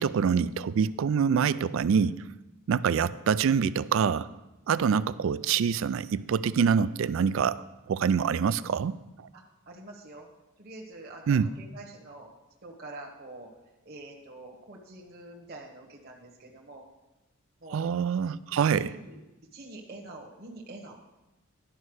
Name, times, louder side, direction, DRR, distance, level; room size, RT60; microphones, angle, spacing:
voice 1, 0.0-2.2 2.7-4.3 4.7-9.0 11.3-11.5 17.7-18.9, right 6 dB, 65° right, 17 dB, 0.3 m, -25 dB
voice 2, 9.3-10.3 10.6-12.3 12.6-13.5 13.8-16.8 17.6-17.9 18.7-19.2 19.5-21.1, right 2 dB, 45° right, -1 dB, 1.2 m, -46 dB
11.5 x 5.5 x 6.3 m, 1.0 s
head